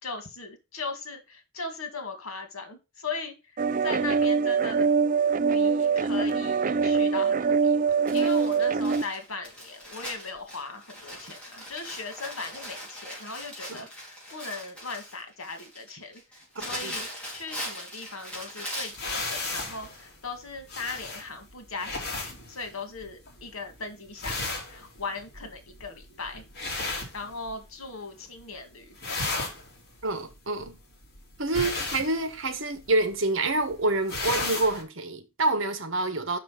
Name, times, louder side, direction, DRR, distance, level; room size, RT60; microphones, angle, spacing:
voice 1, 0.0-3.3 3.8-4.9 5.5-16.2 16.6-26.4 27.1-29.3 31.6-31.8, left 4 dB, 85° left, 2.0 m, -38 dB
sound 1, 3.6-9.0, right 5 dB, 40° right, 0.4 m, -23 dB
Crumpling crinkling, 8.1-19.1 19.9-20.0 20.4-20.5, equal, 5° left, 3.7 m, -40 dB
sound 2, 18.9-27.9 28.2-28.6 28.8-34.8, left 3 dB, 50° left, 2.8 m, -35 dB
voice 2, 30.0-30.8 31.4-36.4, right 2 dB, 65° right, 1.3 m, -27 dB
6.2 x 5.7 x 5.8 m
head